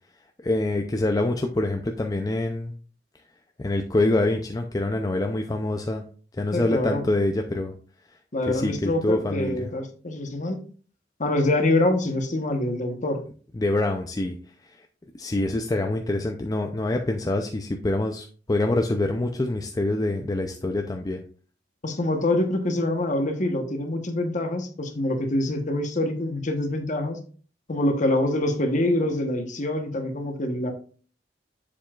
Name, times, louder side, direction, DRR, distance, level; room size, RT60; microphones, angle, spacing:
voice 1, 0.4-2.7 3.6-6.0 6.3-7.7 8.5-9.7 13.5-14.3 14.6-14.7 15.2-21.2, left 2 dB, 20° left, 4 dB, 0.5 m, -25 dB
voice 2, 6.5-7.0 8.3-10.6 11.2-13.2 21.8-27.2 27.7-30.7, left 1 dB, 45° left, 6 dB, 1.1 m, -25 dB
7.4 x 6.9 x 2.4 m, 0.41 s
head